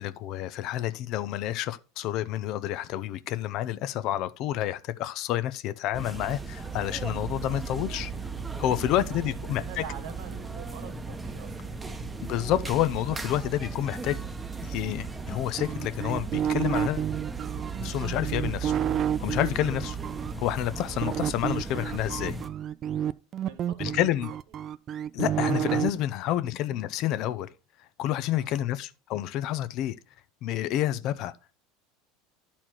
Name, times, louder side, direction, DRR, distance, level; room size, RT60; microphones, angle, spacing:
voice 1, 0.0-8.1 8.6-9.8 12.2-14.2 14.6-17.1 17.8-18.8 19.2-20.0 20.4-22.4 23.8-24.3 25.1-27.5 28.0-30.0 30.4-31.3, left 13 dB, 55° left, 0.6 m, -29 dB
sound 1, 5.9-22.5, right 4 dB, 15° right, 0.9 m, -36 dB
voice 2, 9.0-11.8 23.4-24.2 26.2-26.4 28.4-28.8, right 9 dB, 75° right, 1.5 m, -46 dB
sound 2, 15.6-20.3 21.0-25.9, right 9 dB, 40° right, 0.4 m, -30 dB
11.0 x 4.3 x 4.5 m
hypercardioid pair, 85°, 0 cm